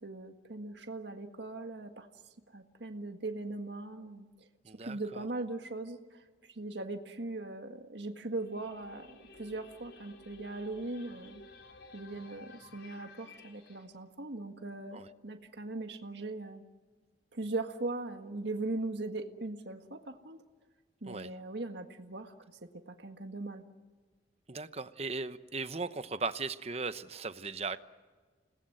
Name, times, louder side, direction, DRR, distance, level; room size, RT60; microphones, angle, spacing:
voice 1, 0.0-2.1 2.5-4.3 4.8-11.4 11.9-16.6 17.3-20.4 21.0-22.3 22.6-23.6, right 2 dB, 75° right, 5 dB, 1.7 m, -40 dB
voice 2, 4.6-5.3 14.9-15.1 21.1-21.3 24.5-27.8, right 4 dB, 35° right, 12 dB, 0.9 m, -38 dB
sound 1, 8.3-13.9, left 2 dB, 85° left, 3.3 m, -54 dB
29.5 x 19.5 x 7.9 m, 1.4 s
head